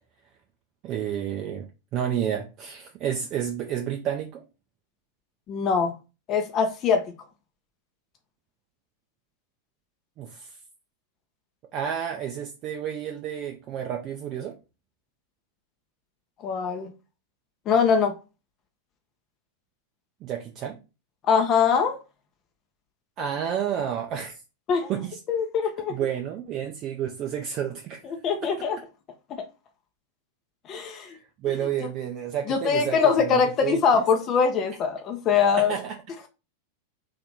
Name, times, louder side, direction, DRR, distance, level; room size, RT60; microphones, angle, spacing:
voice 1, 0.8-1.7 1.9-4.4 10.2-10.6 11.7-14.6 20.2-20.8 23.2-24.4 24.9-25.2 25.9-28.0 30.8-34.0 35.6-36.0, right 9 dB, 35° right, 0.5 m, -30 dB
voice 2, 5.5-5.9 6.3-7.0 16.4-16.9 17.7-18.1 21.3-22.0 24.7-24.9 25.3-25.9 28.1-28.8 29.3-29.4 30.7-31.1 32.5-35.7, left 6 dB, 30° left, 0.6 m, -22 dB
3.3 x 2.8 x 3.9 m
figure-of-eight pair, 90°, 0 cm